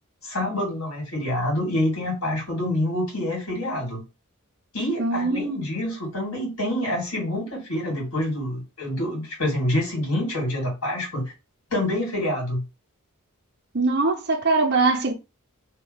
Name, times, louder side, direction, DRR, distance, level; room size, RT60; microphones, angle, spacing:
voice 1, 0.2-4.0 4.7-11.2 11.7-12.6, left 1 dB, 70° left, 2.3 m, -27 dB
voice 2, 5.0-5.6 13.7-15.1, right 3 dB, 50° right, 0.7 m, -22 dB
2.9 x 2.9 x 3.9 m
head